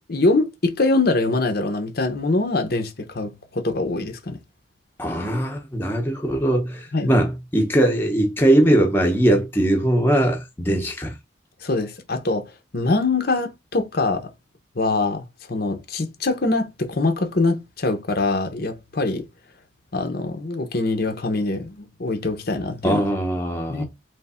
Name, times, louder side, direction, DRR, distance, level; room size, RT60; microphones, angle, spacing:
voice 1, 0.1-4.4 6.9-7.1 10.7-10.8 11.6-14.3 14.8-19.2 19.9-23.0 23.7-23.8, left 3 dB, 50° left, 0.9 m, -23 dB
voice 2, 5.0-11.1 22.8-23.8, right 1 dB, 10° left, 0.9 m, -20 dB
3.4 x 3.2 x 4.3 m
head